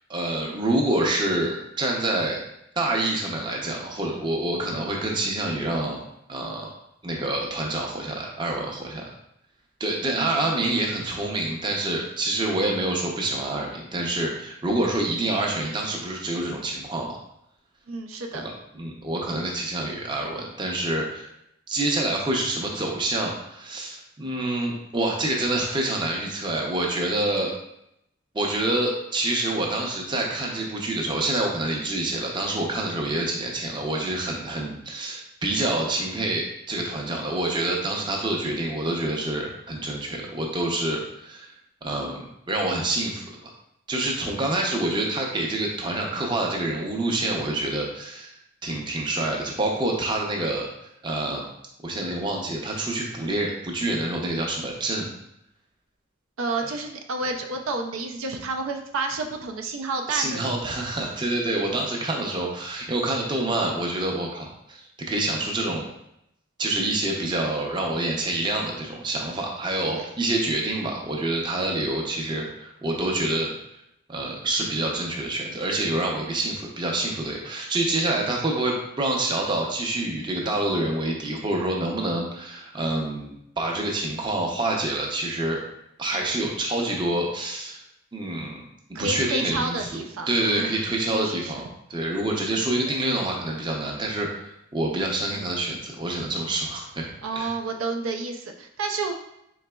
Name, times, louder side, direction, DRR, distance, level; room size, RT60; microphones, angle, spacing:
voice 1, 0.1-2.4 2.8-6.0 6.3-6.7 7.0-9.1 9.8-17.2 18.3-21.3 21.7-27.5 28.3-41.5 41.8-43.2 43.9-48.3 48.6-50.7 51.0-51.4 51.8-55.1 60.1-65.9 66.6-73.5 74.1-85.6 86.0-87.8 88.1-88.6 89.0-97.5, right 2 dB, 20° right, -1 dB, 0.5 m, -27 dB
voice 2, 10.2-10.6 17.9-18.5 56.4-60.5 69.9-70.1 88.9-90.8 91.1-91.6 97.2-99.1, right 3 dB, 85° right, 4 dB, 0.4 m, -30 dB
4.0 x 3.9 x 2.2 m, 0.79 s
head